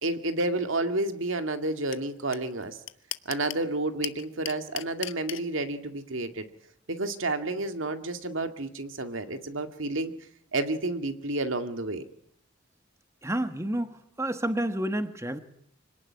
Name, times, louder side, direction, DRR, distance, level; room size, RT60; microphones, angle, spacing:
voice 1, 0.0-2.8 3.3-6.5 6.9-10.1 10.5-12.0, right 2 dB, 80° right, 8 dB, 2.2 m, -30 dB
sound 1, 1.9-2.0 2.3-2.4 2.6-3.6 4.0-5.4, left 13 dB, 75° left, 1.0 m, -34 dB
voice 2, 13.2-15.4, right 1 dB, 15° right, 9 dB, 1.3 m, -30 dB
25.5 x 18.5 x 9.8 m, 0.70 s
head